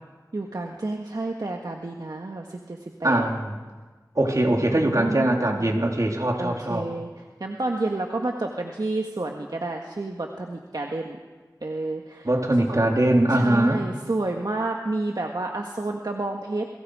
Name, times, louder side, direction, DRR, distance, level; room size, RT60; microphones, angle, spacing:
voice 1, 0.3-3.2 4.7-5.8 6.4-11.2 11.6-12.3 13.3-16.7, right 2 dB, 70° right, 1 dB, 1.7 m, -30 dB
voice 2, 3.0-3.5 4.2-6.9 12.2-13.8, right 1 dB, 50° right, 1 dB, 3.5 m, -22 dB
29.0 x 22.5 x 5.0 m, 1.4 s
wide cardioid pair, 50°, 7 cm